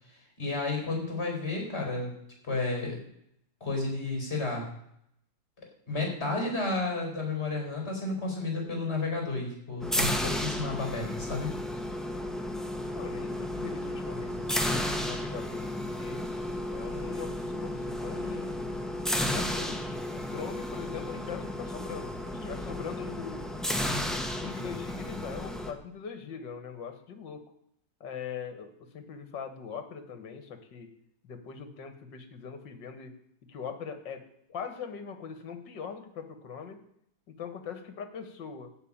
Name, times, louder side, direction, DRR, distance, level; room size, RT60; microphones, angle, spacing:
voice 1, 0.4-2.1 2.4-3.0 3.6-4.7 5.9-11.5, left 3 dB, 35° left, 1 dB, 4.8 m, -31 dB
sound 1, 9.8-25.7, left 1 dB, ahead, 0.9 m, -33 dB
voice 2, 12.9-16.3 16.7-18.8 19.2-19.8 20.1-23.5 24.4-27.4 28.0-30.9 31.2-33.1 33.5-36.8 37.3-38.7, left 6 dB, 70° left, 9 dB, 2.1 m, -41 dB
15.0 x 5.6 x 8.7 m, 0.74 s
omnidirectional pair, 2.0 m